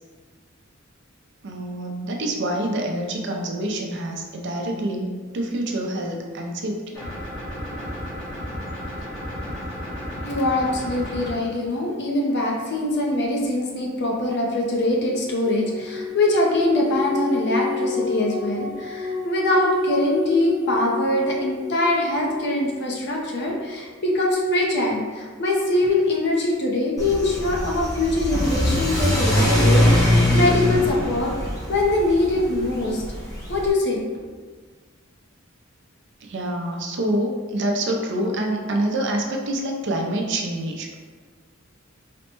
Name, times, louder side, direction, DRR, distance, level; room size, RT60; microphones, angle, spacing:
voice 1, 1.4-7.0 36.2-40.9, right 1 dB, 60° right, 1 dB, 0.5 m, -26 dB
sound 1, 6.9-11.3, equal, 70° left, 1.3 m, -33 dB
voice 2, 10.2-31.3 31.7-33.0 33.5-34.0, left 1 dB, 55° left, -2 dB, 0.6 m, -23 dB
sound 2, 15.0-22.8, left 4 dB, 20° right, 0.8 m, -30 dB
Car / Accelerating revving vroom, 27.0-33.7, left 1 dB, 15° left, 0.6 m, -22 dB
4.1 x 2.1 x 2.9 m, 1.5 s
head